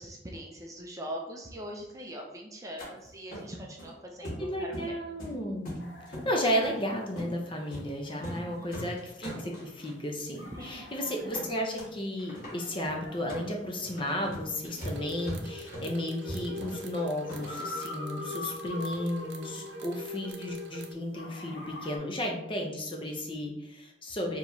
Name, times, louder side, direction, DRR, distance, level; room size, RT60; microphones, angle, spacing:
voice 1, 0.0-4.8 8.2-8.9 10.5-11.1 19.5-20.0, equal, 20° right, 0 dB, 0.5 m, -42 dB
sound 1, 2.8-2.9 3.3-3.9 4.2-4.9 5.2-6.3 6.6-6.8 7.2-7.3 7.7-7.9 8.1-8.4 8.7-9.9 10.3-10.4 10.7-10.9 11.3-11.9 12.2-17.8, equal, 50° left, 1.5 m, -41 dB
voice 2, 4.4-5.9 6.2-24.4, equal, 25° left, 1 dB, 0.6 m, -33 dB
sound 2, 5.8-20.7 21.1-22.0, left 2 dB, 65° left, 0.7 m, -45 dB
sound 3, 14.8-20.9, left 2 dB, 75° right, 0.6 m, -42 dB
4.6 x 3.0 x 2.7 m, 0.85 s
head